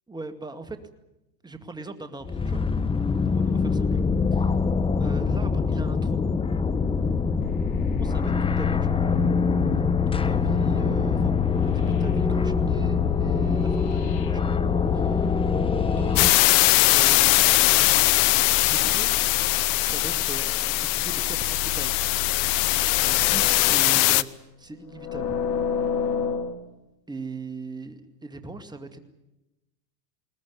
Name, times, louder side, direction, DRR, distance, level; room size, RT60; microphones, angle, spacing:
voice 1, 0.1-0.8 1.4-2.7 3.3-4.0 4.3-4.5 5.0-6.2 8.0-9.0 9.7-14.6 14.9-15.4 15.9-16.4 16.9-17.5 18.7-19.1 19.8-21.9 23.0-24.3 24.6-25.4 27.1-29.0, right 3 dB, 10° right, 8 dB, 2.1 m, -39 dB
sound 1, 2.2-16.3, left 5 dB, 10° left, 0.9 m, -24 dB
sound 2, 7.4-23.9 24.9-26.5, left 5 dB, 75° left, 3.3 m, -33 dB
sound 3, 16.2-24.2, left 19 dB, 55° left, 0.9 m, -21 dB
21.0 x 19.5 x 9.7 m, 0.96 s
hypercardioid pair, 105°, 48 cm